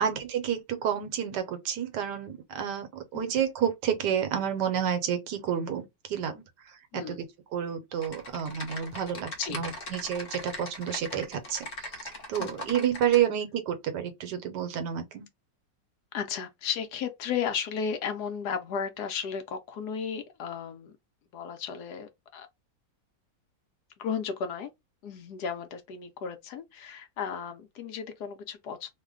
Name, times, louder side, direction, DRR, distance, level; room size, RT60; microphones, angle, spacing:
voice 1, 0.0-7.2 7.5-15.2, right 9 dB, 75° right, 1.2 m, -30 dB
Typing, 8.0-13.2, left 1 dB, 40° left, 0.8 m, -40 dB
voice 2, 16.1-21.0 21.3-22.5 24.0-24.7 25.0-28.9, left 7 dB, 70° left, 1.1 m, -34 dB
3.1 x 2.1 x 3.5 m
omnidirectional pair, 1.9 m